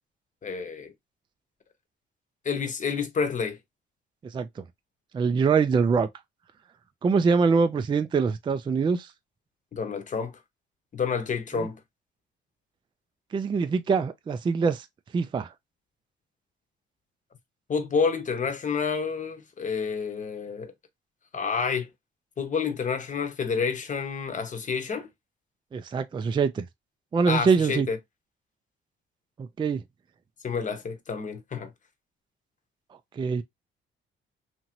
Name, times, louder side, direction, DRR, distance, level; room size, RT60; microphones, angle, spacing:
voice 1, 0.4-0.9 2.4-3.6 9.7-10.3 10.9-11.8 17.7-20.7 21.3-21.9 22.4-25.1 27.3-28.0 30.4-31.7, left 5 dB, 40° left, 0.8 m, -29 dB
voice 2, 4.2-4.6 5.1-6.1 7.0-9.1 11.5-11.7 13.3-14.9 15.1-15.5 25.7-26.6 27.1-27.9 29.4-29.8 33.1-33.4, right 5 dB, 25° right, 0.3 m, -24 dB
2.9 x 2.5 x 2.8 m
cardioid pair, 90°, 20 cm